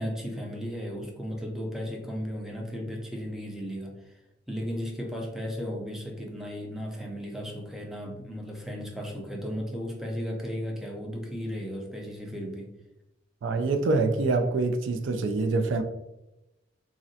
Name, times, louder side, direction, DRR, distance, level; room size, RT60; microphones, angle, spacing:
voice 1, 0.0-4.1 4.5-12.7, equal, ahead, -1 dB, 0.4 m, -35 dB
voice 2, 13.4-15.8, right 3 dB, 70° right, 6 dB, 0.3 m, -25 dB
3.6 x 2.1 x 2.6 m, 0.94 s
head